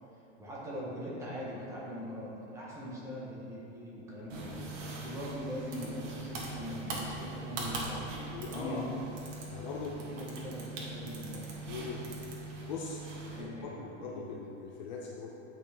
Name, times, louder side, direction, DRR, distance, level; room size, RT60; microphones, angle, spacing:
voice 1, 0.4-8.9 10.0-11.5 13.3-14.2, equal, 10° right, -6 dB, 0.7 m, -41 dB
sound 1, 4.3-13.4, right 2 dB, 70° right, 1.5 m, -41 dB
voice 2, 8.3-8.9 9.4-10.0 11.7-12.1 12.7-13.0 13.3-15.3, left 5 dB, 40° left, -1 dB, 0.4 m, -41 dB
8.9 x 5.1 x 3.4 m, 2.8 s
supercardioid pair, 170°, 38 cm